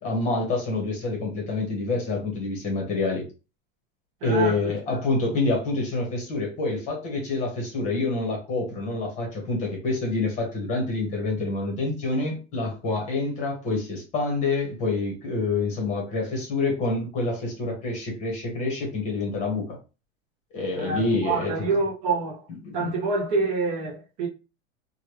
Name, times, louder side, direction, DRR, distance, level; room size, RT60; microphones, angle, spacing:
voice 1, 0.0-3.2 4.2-19.8 20.5-21.5 22.6-22.9, left 3 dB, 20° left, 1.1 m, -27 dB
voice 2, 4.2-4.6 20.7-22.4 22.7-24.3, right 4 dB, 20° right, 0.4 m, -26 dB
3.0 x 2.3 x 3.2 m
supercardioid pair, 180°, 34 cm